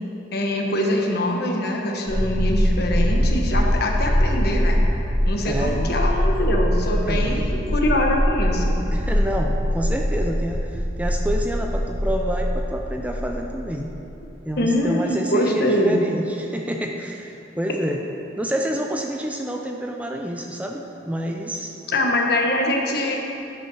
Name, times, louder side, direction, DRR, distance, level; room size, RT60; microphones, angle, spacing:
voice 1, 0.3-4.8 5.3-8.8 14.6-16.0 21.9-23.2, left 1 dB, 55° left, 1 dB, 1.1 m, -23 dB
sound 1, 2.1-14.3, equal, 40° right, 1.7 m, -22 dB
voice 2, 5.4-5.9 7.0-7.5 8.9-13.9 14.4-18.0 18.4-21.8, equal, 5° right, 2 dB, 0.4 m, -28 dB
10.5 x 5.6 x 6.2 m, 2.9 s
head